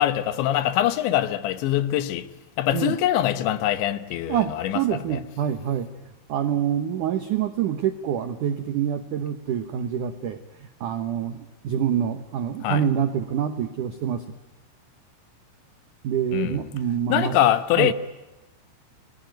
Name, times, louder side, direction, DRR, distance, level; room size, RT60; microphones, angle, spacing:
voice 1, 0.0-2.3 2.6-4.8 5.1-5.2 12.6-12.8 16.3-16.6 17.1-17.9, left 12 dB, 75° left, 3.3 m, -23 dB
voice 2, 4.3-14.3 16.0-17.4 17.8-17.9, right 9 dB, 85° right, 1.7 m, -26 dB
30.0 x 20.0 x 9.2 m
omnidirectional pair, 5.4 m